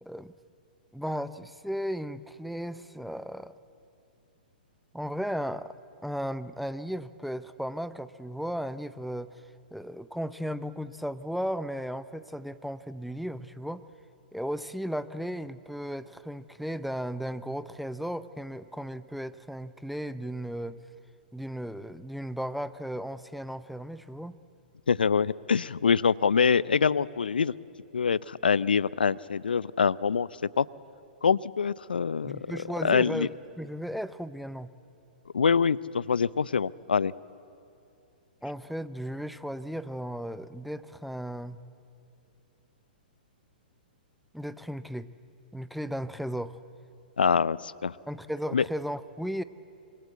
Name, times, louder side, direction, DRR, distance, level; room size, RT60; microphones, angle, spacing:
voice 1, 0.0-0.3 0.9-3.5 4.9-5.7 6.0-9.3 9.7-13.9 14.3-20.8 21.3-24.3 32.2-34.7 38.4-41.6 44.3-45.1 45.5-46.6 48.1-49.4, equal, ahead, 14 dB, 0.7 m, -35 dB
voice 2, 24.9-27.5 27.9-30.3 30.6-30.7 31.2-32.4 32.8-33.3 35.3-37.1 47.2-47.9 48.5-48.6, left 6 dB, 80° left, 21 dB, 0.6 m, -25 dB
26.0 x 24.5 x 8.1 m, 2.6 s
figure-of-eight pair, 115°, 5 cm